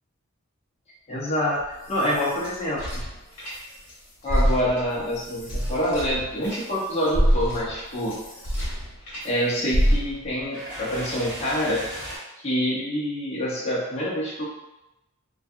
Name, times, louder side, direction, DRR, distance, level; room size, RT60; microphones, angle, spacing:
voice 1, 1.1-3.0 4.2-8.1 9.2-11.8 12.4-14.4, equal, 30° left, -7 dB, 0.7 m, -26 dB
sound 1, 1.6-3.9 4.2-9.3 9.7-10.4, equal, 70° left, 0.9 m, -27 dB
sound 2, 9.1-12.2, right 1 dB, 40° right, 1.0 m, -38 dB
2.6 x 2.3 x 2.3 m, 0.93 s
head